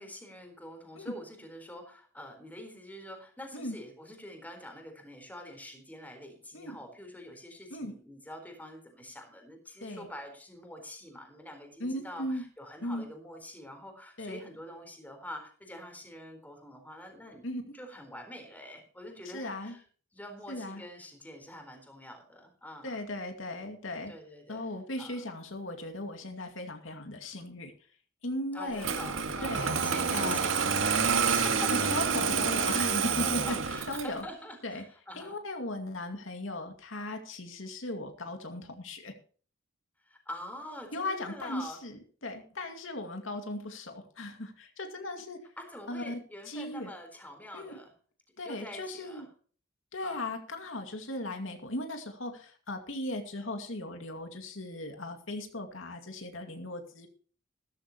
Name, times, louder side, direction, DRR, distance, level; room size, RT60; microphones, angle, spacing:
voice 1, 0.0-17.5 17.7-19.8 20.1-23.0 24.1-25.3 28.5-31.9 33.0-35.4 40.0-41.8 45.6-47.9 48.4-49.3 50.0-50.3, left 1 dB, 10° left, 5 dB, 4.2 m, -45 dB
voice 2, 11.8-12.4 12.8-13.0 14.2-14.4 17.4-17.7 19.2-19.8 20.5-20.8 22.8-24.1 24.5-27.7 28.2-28.9 29.4-29.7 30.1-30.5 31.3-33.6 33.9-34.2 34.6-34.8 35.2-39.1 40.9-42.0 42.2-45.4 45.9-46.2 46.5-46.9 47.5-47.8 48.4-49.3 49.9-57.1, left 1 dB, 85° left, 5 dB, 2.3 m, -37 dB
Engine starting, 28.8-34.2, right 6 dB, 90° right, 1.9 m, -28 dB
15.5 x 14.0 x 3.1 m, 0.43 s
head